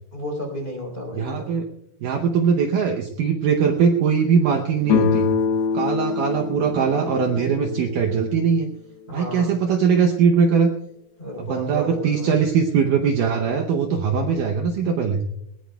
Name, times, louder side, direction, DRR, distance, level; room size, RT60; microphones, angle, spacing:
voice 1, 0.1-1.5 9.1-9.5 11.2-12.5, equal, 15° left, 1 dB, 3.3 m, -32 dB
voice 2, 1.1-1.7 2.0-5.3 5.7-8.7 9.1-10.7 11.4-15.3, right 6 dB, 70° right, 2 dB, 2.1 m, -21 dB
sound 1, 4.8-8.5, left 6 dB, 90° left, 2.8 m, -24 dB
20.5 x 20.0 x 2.3 m, 0.82 s
omnidirectional pair, 4.4 m